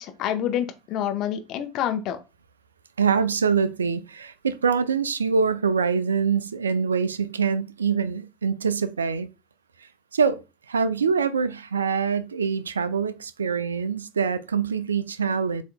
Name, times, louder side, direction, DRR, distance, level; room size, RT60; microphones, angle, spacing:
voice 1, 0.0-2.2, left 10 dB, 50° left, 0.8 m, -27 dB
voice 2, 3.0-9.3 10.1-10.4 10.7-15.6, right 6 dB, 80° right, 0.3 m, -24 dB
7.4 x 2.7 x 2.2 m
figure-of-eight pair, 70°, 0 cm